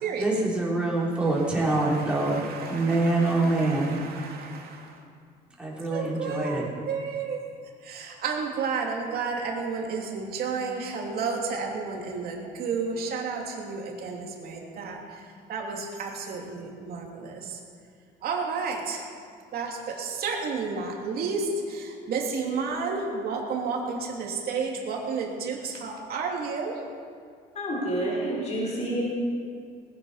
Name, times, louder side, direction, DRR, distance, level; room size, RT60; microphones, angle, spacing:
voice 1, 0.2-2.4 2.7-3.9 5.6-6.6, right 2 dB, 5° right, -5 dB, 4.0 m, -25 dB
voice 2, 1.4-4.9 5.9-7.4 7.8-15.0 15.5-17.6 18.2-19.0 19.5-26.7, right 5 dB, 65° right, 0 dB, 2.9 m, -32 dB
voice 3, 27.5-29.0, right 1 dB, 40° left, -4 dB, 4.6 m, -28 dB
19.5 x 9.5 x 5.7 m, 2.2 s
cardioid pair, 110°, 17 cm